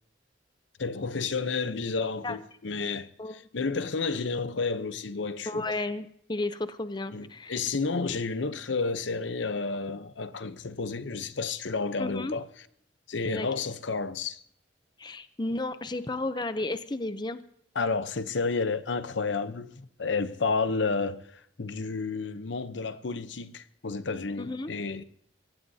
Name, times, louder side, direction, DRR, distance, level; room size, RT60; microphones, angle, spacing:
voice 1, 0.8-5.6 7.1-12.7 13.1-14.4 17.7-25.0, left 4 dB, 75° left, 0.8 m, -31 dB
voice 2, 5.5-7.6 12.0-12.3 13.3-13.5 15.0-17.4 24.4-24.7, left 2 dB, 25° left, 0.6 m, -33 dB
23.5 x 17.5 x 2.8 m
head